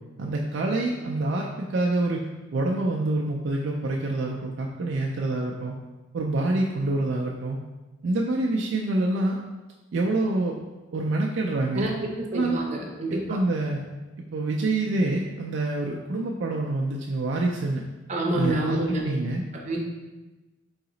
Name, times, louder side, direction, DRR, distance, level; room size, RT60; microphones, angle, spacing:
voice 1, 0.2-5.7 6.1-7.6 8.0-9.4 9.9-10.6 10.9-11.9 12.3-12.6 13.1-13.8 14.2-17.8 18.3-19.4, right 2 dB, 60° right, -1 dB, 0.3 m, -26 dB
voice 2, 12.2-13.2 18.1-19.0 19.5-19.8, right 1 dB, 35° right, -2 dB, 0.7 m, -27 dB
3.9 x 2.8 x 3.9 m, 1.1 s
head